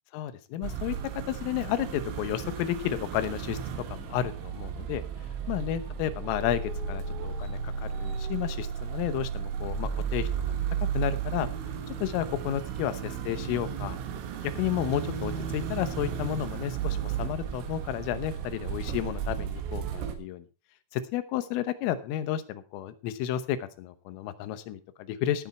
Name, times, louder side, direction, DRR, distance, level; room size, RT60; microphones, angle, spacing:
voice 1, 0.1-3.6 3.9-5.0 5.5-10.6 11.0-11.5 11.9-14.0 14.4-20.5 20.9-25.5, left 11 dB, 90° left, 12 dB, 3.7 m, -32 dB
sound 1, 0.6-20.2, right 7 dB, 80° right, 4.1 m, -34 dB
16.5 x 8.3 x 4.3 m, 0.32 s
omnidirectional pair, 5.7 m